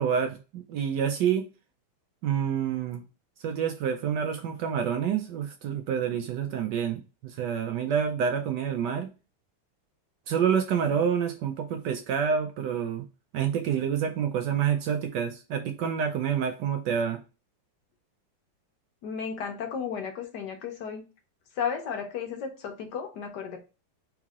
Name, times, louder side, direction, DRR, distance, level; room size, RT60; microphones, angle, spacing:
voice 1, 0.0-1.4 2.2-3.0 3.4-9.1 10.3-13.1 13.3-17.2, right 8 dB, 75° right, 6 dB, 1.1 m, -28 dB
voice 2, 19.0-21.0 21.6-23.6, left 7 dB, 65° left, 4 dB, 1.3 m, -34 dB
3.7 x 3.2 x 3.6 m, 0.30 s
omnidirectional pair, 2.2 m